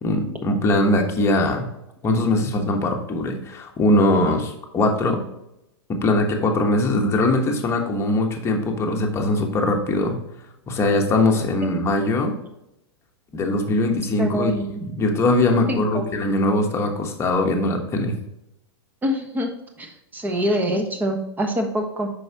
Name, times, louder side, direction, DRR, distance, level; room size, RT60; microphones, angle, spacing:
voice 1, 0.0-1.7 2.0-5.2 5.9-10.2 10.7-12.3 13.3-14.5 14.8-18.1, left 2 dB, 20° left, 2 dB, 1.2 m, -21 dB
voice 2, 14.2-14.9 15.7-16.0 19.0-19.5 19.8-22.1, equal, 10° right, 4 dB, 1.1 m, -25 dB
7.7 x 5.7 x 2.9 m, 0.86 s
hypercardioid pair, 135°, 14 cm